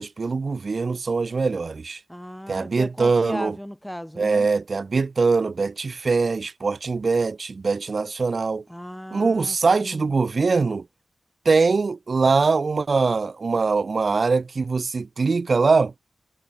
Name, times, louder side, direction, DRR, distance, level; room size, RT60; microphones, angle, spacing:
voice 1, 0.0-2.0 2.5-3.5 4.2-8.6 9.1-10.8 11.4-15.9, right 4 dB, 60° right, 1.3 m, -22 dB
voice 2, 2.1-4.5 8.7-10.1, equal, 5° left, 1.1 m, -36 dB
cardioid pair, 50°, 0 cm